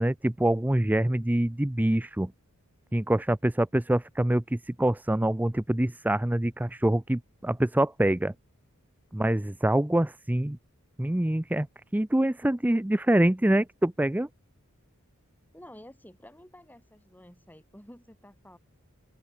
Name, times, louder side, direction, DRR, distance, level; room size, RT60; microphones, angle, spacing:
voice 1, 0.0-2.3 2.9-8.3 9.1-10.6 11.0-11.7 11.9-14.3, right 1 dB, 10° right, 0.5 m, -25 dB
voice 2, 15.5-18.6, left 1 dB, 10° left, 4.8 m, -51 dB
open air
head